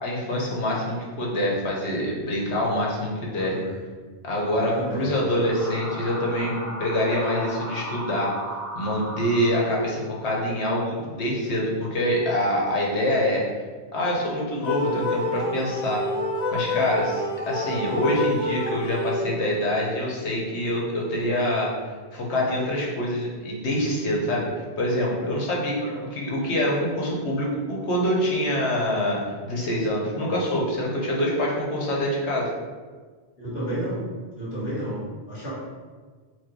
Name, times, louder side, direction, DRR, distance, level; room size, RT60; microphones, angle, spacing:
voice 1, 0.0-3.6 4.2-8.3 8.7-13.4 13.9-16.0 16.5-21.7 22.1-24.5 24.8-25.8 26.1-32.5, left 1 dB, 90° left, -3 dB, 1.3 m, -25 dB
voice 2, 3.1-3.8 4.4-5.1 25.8-26.1 31.2-31.3 33.4-34.0 34.4-35.5, right 1 dB, 70° left, -11 dB, 2.0 m, -32 dB
sound 1, 5.0-10.0, right 1 dB, 25° right, 0.3 m, -36 dB
sound 2, 14.6-19.5, left 2 dB, 40° left, 1.2 m, -28 dB
4.6 x 2.2 x 4.5 m, 1.5 s
omnidirectional pair, 1.1 m